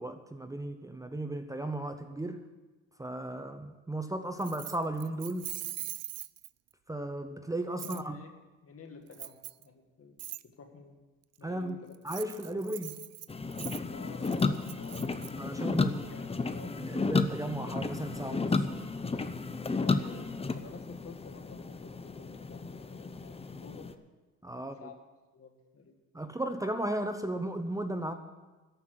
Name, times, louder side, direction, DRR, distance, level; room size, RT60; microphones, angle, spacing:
voice 1, 0.0-2.4 3.0-5.5 6.9-8.2 11.4-11.8 12.0-13.0 15.4-16.0 16.7-18.7 24.4-24.8 26.1-28.1, right 1 dB, 10° right, 7 dB, 0.8 m, -35 dB
Keys jangling, 4.4-6.7 7.8-8.0 9.1-9.6 10.2-10.4 11.9-15.3, right 14 dB, 55° right, 0.5 m, -42 dB
voice 2, 7.7-8.3 8.6-11.1 11.4-12.0 12.5-12.7 13.9-16.8 19.8-24.0 24.6-25.0 25.3-26.0, left 5 dB, 50° left, 5 dB, 2.0 m, -52 dB
sound 1, 13.3-23.9, left 4 dB, 20° left, 0.7 m, -33 dB
13.5 x 5.8 x 9.3 m, 1.2 s
cardioid pair, 90°, 30 cm